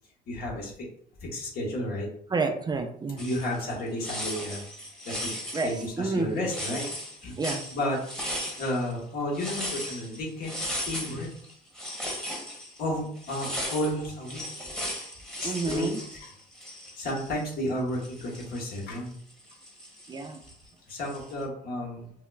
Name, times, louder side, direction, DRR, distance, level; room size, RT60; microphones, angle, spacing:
voice 1, 0.3-0.7 1.2-2.1 3.2-4.6 5.0-5.3 5.6-6.9 7.2-7.4 7.7-8.0 8.6-10.5 10.8-11.3 12.8-14.7 15.4-16.3 17.0-19.2 20.9-22.1, left 1 dB, 65° left, -3 dB, 1.3 m, -32 dB
voice 2, 2.3-3.2 5.5-5.7 6.0-6.3 7.4-7.6 15.4-16.0 20.1-20.4, right 3 dB, 25° right, 5 dB, 0.4 m, -29 dB
sound 1, 3.2-3.7 4.0-8.9 9.3-17.7 17.9-20.5 21.0-21.4, equal, 5° left, 1.0 m, -37 dB
5.3 x 2.1 x 2.3 m, 0.63 s
cardioid pair, 110°, 17 cm